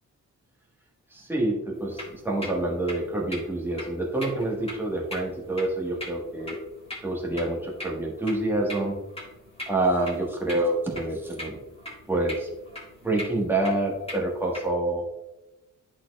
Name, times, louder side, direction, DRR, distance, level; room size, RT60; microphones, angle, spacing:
voice 1, 1.1-6.6 7.0-8.9 9.7-11.6 12.1-12.5 13.0-15.0, right 2 dB, 5° right, -2 dB, 1.3 m, -27 dB
sound 1, 1.7-14.7, left 1 dB, 20° left, 1.7 m, -42 dB
10.5 x 4.3 x 2.3 m, 0.97 s
wide cardioid pair, 140°, 31 cm